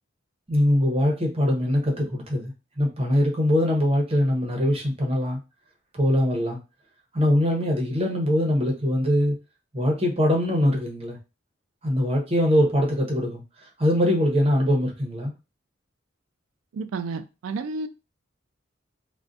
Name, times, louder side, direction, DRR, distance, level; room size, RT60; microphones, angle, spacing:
voice 1, 0.5-5.4 5.9-6.6 7.1-9.4 9.7-11.2 11.8-13.4 13.8-15.3, left 1 dB, 30° right, 0.7 m, -22 dB
voice 2, 16.7-17.9, right 4 dB, 80° right, 0.3 m, -31 dB
2.5 x 2.1 x 2.4 m
head